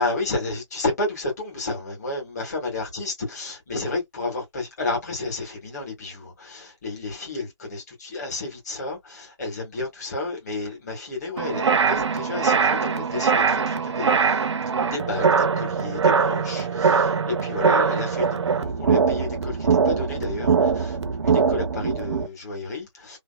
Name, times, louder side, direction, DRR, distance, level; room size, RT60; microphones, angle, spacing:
voice 1, 0.0-14.4 14.9-19.6 19.8-21.0 21.2-23.2, left 2 dB, 35° left, 1.8 m, -31 dB
sound 1, 11.4-22.3, right 5 dB, 65° right, 0.6 m, -22 dB
3.3 x 2.4 x 2.2 m
hypercardioid pair, 170°, 16 cm